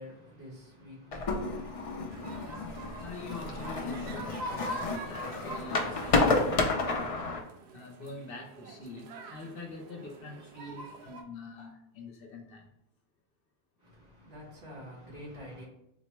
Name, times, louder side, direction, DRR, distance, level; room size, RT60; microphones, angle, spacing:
voice 1, 0.0-2.4 13.8-15.7, equal, 65° right, 1.5 m, -48 dB
sound 1, 1.1-7.4, left 3 dB, 45° left, 0.5 m, -31 dB
sound 2, 2.1-11.2, right 1 dB, 90° right, 0.8 m, -44 dB
voice 2, 3.0-7.0 7.7-12.7, left 3 dB, 65° left, 0.9 m, -45 dB
4.0 x 2.1 x 4.4 m
omnidirectional pair, 1.0 m